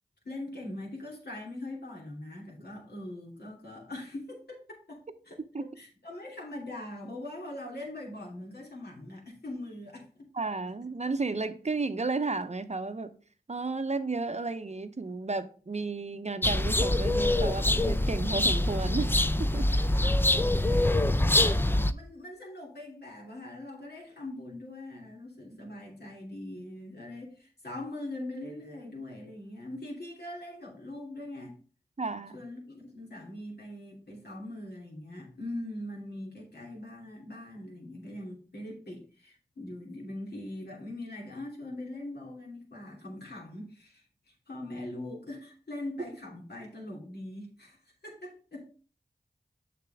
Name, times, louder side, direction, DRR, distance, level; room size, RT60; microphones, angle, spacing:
voice 1, 0.2-10.3 19.7-31.6 32.3-47.8 48.0-48.6, left 1 dB, 70° left, -2 dB, 3.0 m, -42 dB
voice 2, 10.3-13.1 13.5-19.1 19.4-19.7 32.0-32.4, right 3 dB, 40° right, 11 dB, 0.7 m, -33 dB
sound 1, 16.4-21.9, left 1 dB, 10° left, 0.5 m, -25 dB
6.8 x 6.8 x 3.5 m, 0.40 s
cardioid pair, 40°, 17 cm